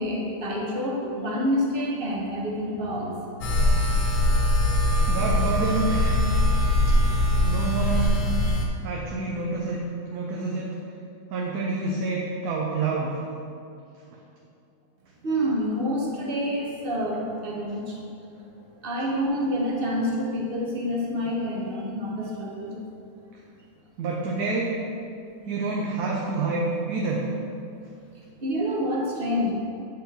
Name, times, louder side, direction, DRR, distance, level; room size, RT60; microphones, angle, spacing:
voice 1, 0.0-3.2 15.2-18.0 18.8-22.8 28.4-29.5, equal, 40° right, -2 dB, 1.0 m, -27 dB
sound 1, 3.4-8.7, left 1 dB, 85° left, 1.5 m, -22 dB
voice 2, 5.1-6.2 7.3-8.3 8.8-9.8 10.1-10.7 11.3-13.2 14.1-14.2 24.0-24.8 25.5-27.3, right 3 dB, 70° right, -2 dB, 1.2 m, -28 dB
8.1 x 4.4 x 4.1 m, 2.5 s
omnidirectional pair, 1.8 m